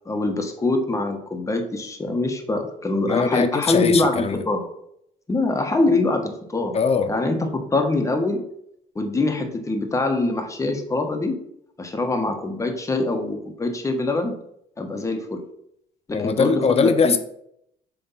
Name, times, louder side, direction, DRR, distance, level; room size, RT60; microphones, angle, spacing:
voice 1, 0.0-4.6 5.3-6.8 7.1-8.4 8.9-11.4 11.8-14.4 14.8-15.5 16.1-17.2, left 2 dB, 20° left, 4 dB, 1.3 m, -24 dB
voice 2, 3.1-4.4 6.7-7.1 16.1-17.2, left 5 dB, 40° left, 10 dB, 0.7 m, -21 dB
7.5 x 3.5 x 5.6 m, 0.73 s
cardioid pair, 110°, 17 cm